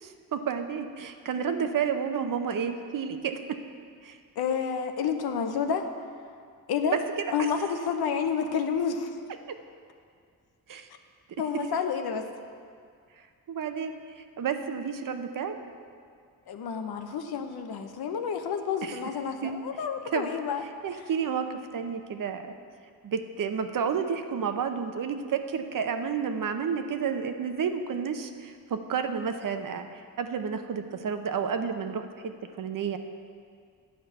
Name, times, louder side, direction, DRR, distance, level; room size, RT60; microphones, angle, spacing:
voice 1, 0.0-3.4 4.0-4.2 6.9-7.0 10.7-10.9 13.5-15.5 18.8-19.0 19.4-19.5 20.1-20.3 20.8-22.4 23.0-29.9 30.2-32.3 32.6-33.0, right 6 dB, 60° right, 7 dB, 0.8 m, -30 dB
voice 2, 4.4-5.9 6.7-7.0 7.3-9.2 11.4-12.3 16.5-20.6 20.9-21.0, left 6 dB, 85° left, 6 dB, 0.9 m, -29 dB
10.5 x 5.2 x 7.9 m, 2.2 s
cardioid pair, 100°, 37 cm